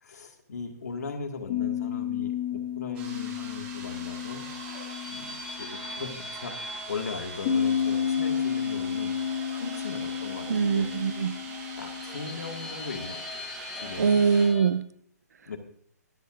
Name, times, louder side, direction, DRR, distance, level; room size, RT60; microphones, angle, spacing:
voice 1, 0.0-4.4 5.1-10.9 11.8-13.5 13.8-14.1 15.5-15.6, left 4 dB, 70° left, 4 dB, 1.9 m, -38 dB
sound 1, 1.5-6.1 7.4-12.7, left 8 dB, 25° left, 1.6 m, -31 dB
sound 2, 2.9-14.5, right 4 dB, 15° right, 1.8 m, -43 dB
sound 3, 3.9-14.7, left 3 dB, 5° left, 0.5 m, -43 dB
voice 2, 10.5-11.4 14.0-14.9, right 6 dB, 70° right, 15 dB, 0.7 m, -23 dB
23.0 x 7.8 x 2.5 m, 0.62 s
hypercardioid pair, 175°, 9 cm